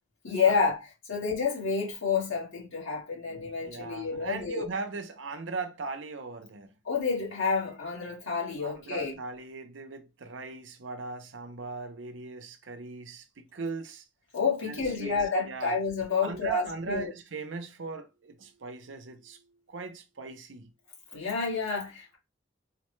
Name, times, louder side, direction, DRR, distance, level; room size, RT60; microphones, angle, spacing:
voice 1, 0.2-4.7 6.8-9.1 14.3-17.1 21.1-22.2, left 5 dB, 90° left, 1.7 m, -29 dB
voice 2, 3.6-6.7 8.6-14.0 14.7-15.8 16.2-19.4 19.7-20.7, right 4 dB, 75° right, 0.6 m, -39 dB
4.1 x 2.1 x 3.0 m
head